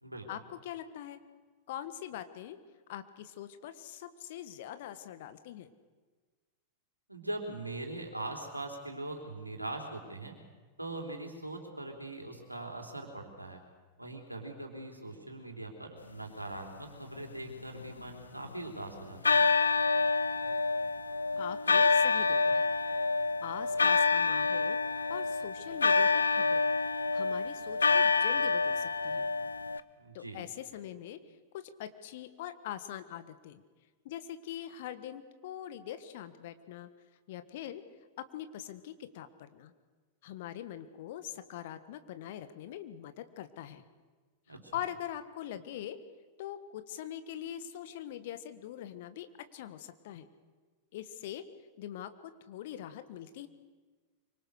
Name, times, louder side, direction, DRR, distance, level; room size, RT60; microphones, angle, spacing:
voice 1, 0.3-1.2 1.7-2.6 2.9-5.7 21.4-22.7 23.4-26.6 27.1-29.3 30.1-31.2 31.5-33.6 34.0-36.9 37.3-37.8 38.2-39.7 40.2-43.8 44.5-46.0 46.4-49.3 49.5-50.3 50.9-51.5 51.8-53.5, left 11 dB, 55° left, 11 dB, 1.6 m, -43 dB
voice 2, 7.1-10.4 10.8-13.6 14.0-19.4 30.0-30.5 44.5-44.8, right 2 dB, 85° right, 2 dB, 3.7 m, -41 dB
sound 1, 17.2-18.7 19.2-29.8, left 4 dB, 75° left, 0.8 m, -27 dB
25.0 x 24.5 x 6.7 m, 1.4 s
figure-of-eight pair, 90°, 0 cm